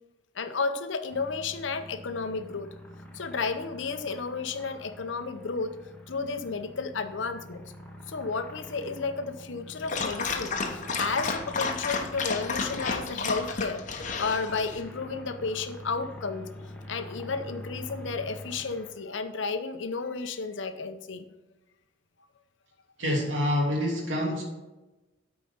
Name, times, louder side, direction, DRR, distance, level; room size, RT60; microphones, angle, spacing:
voice 1, 0.3-2.7 3.1-5.8 6.1-7.6 8.1-21.3, left 4 dB, 65° left, 9 dB, 0.7 m, -32 dB
sound 1, 1.1-18.9, left 1 dB, 5° left, 1.0 m, -46 dB
Dog, 9.8-14.8, left 4 dB, 40° left, 0.9 m, -32 dB
voice 2, 23.0-24.4, left 1 dB, 70° right, -2 dB, 2.7 m, -27 dB
8.6 x 4.9 x 5.5 m, 1.1 s
head